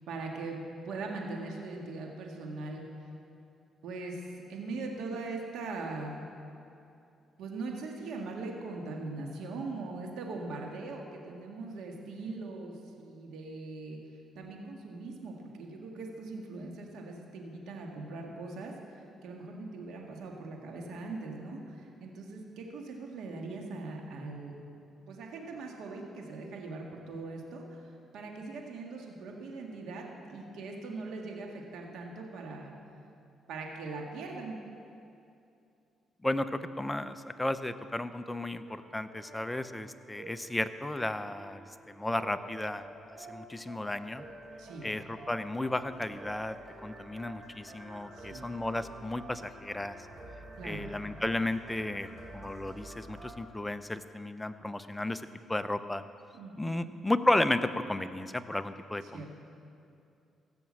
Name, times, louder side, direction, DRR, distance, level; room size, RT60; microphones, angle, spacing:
voice 1, 0.1-2.8 3.8-6.1 7.4-14.0 14.4-24.6 25.1-32.7 33.5-34.6 44.6-44.9 48.1-48.5 50.6-50.9 56.3-56.9 59.0-59.3, right 3 dB, 80° right, 1 dB, 1.7 m, -41 dB
voice 2, 36.2-44.3 44.8-46.6 46.8-50.0 50.6-52.1 52.3-55.2 55.5-56.0 56.6-59.3, left 1 dB, 10° left, 10 dB, 0.6 m, -33 dB
sound 1, 38.2-53.4, right 1 dB, 30° right, 2.9 m, -49 dB
16.0 x 7.0 x 7.5 m, 2.6 s
cardioid pair, 90°, 0 cm